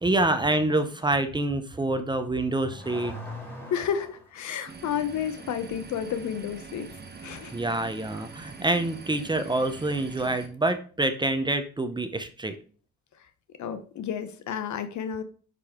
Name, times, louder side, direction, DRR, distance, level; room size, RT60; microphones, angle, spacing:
voice 1, 0.0-3.1 7.5-12.6, right 2 dB, 15° right, 9 dB, 0.8 m, -26 dB
Car / Accelerating revving vroom, 2.1-4.3, left 1 dB, 5° left, 3.7 m, -41 dB
voice 2, 3.7-6.9 7.2-7.6 13.6-15.2, left 8 dB, 70° left, 10 dB, 0.9 m, -31 dB
sound 1, 4.7-10.5, right 4 dB, 35° right, 1.2 m, -44 dB
5.5 x 5.2 x 3.7 m, 0.40 s
cardioid pair, 90°, 30 cm